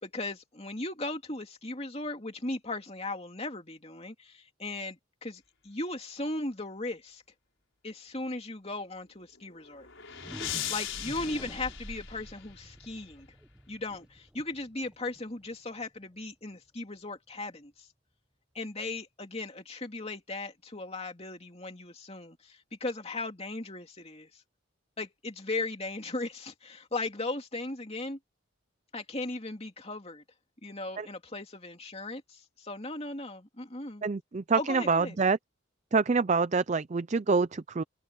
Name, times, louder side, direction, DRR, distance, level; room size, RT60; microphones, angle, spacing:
voice 1, 0.0-7.2 7.8-10.2 10.7-13.3 13.7-17.9 18.5-24.4 25.0-28.2 28.9-30.2 30.6-34.0 34.6-35.2, left 2 dB, 30° left, 2.7 m, -37 dB
sound 1, 9.3-12.7, left 11 dB, 65° left, 4.9 m, -39 dB
sound 2, 10.0-15.9, equal, 5° right, 1.1 m, -47 dB
voice 2, 34.0-35.4 35.9-37.8, right 4 dB, 35° right, 0.4 m, -26 dB
open air
head